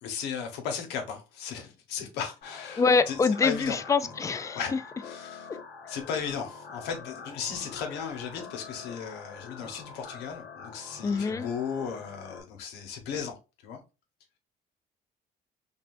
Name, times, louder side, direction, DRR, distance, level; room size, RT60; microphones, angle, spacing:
voice 1, 0.0-3.8 4.5-4.7 5.0-5.5 5.9-13.3 13.6-13.8, left 7 dB, 90° left, 1.1 m, -36 dB
sound 1, 2.4-12.4, left 5 dB, 65° left, 1.2 m, -45 dB
voice 2, 2.8-4.6 11.0-11.5, left 4 dB, 20° left, 0.4 m, -25 dB
5.3 x 2.4 x 2.6 m
cardioid pair, 110°, 17 cm